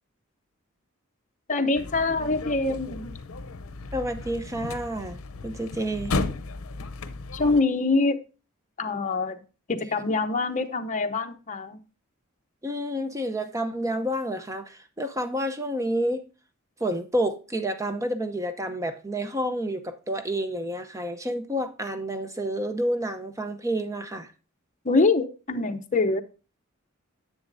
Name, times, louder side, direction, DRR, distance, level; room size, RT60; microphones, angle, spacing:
voice 1, 1.5-3.1 7.3-8.2 8.8-9.4 9.7-11.8 24.8-26.2, left 3 dB, 35° left, 0.8 m, -24 dB
sound 1, 1.7-7.6, left 3 dB, 85° left, 0.6 m, -34 dB
voice 2, 3.9-5.2 5.4-6.2 12.6-16.2 16.8-24.3, equal, 15° right, 0.7 m, -29 dB
10.0 x 7.5 x 2.6 m
head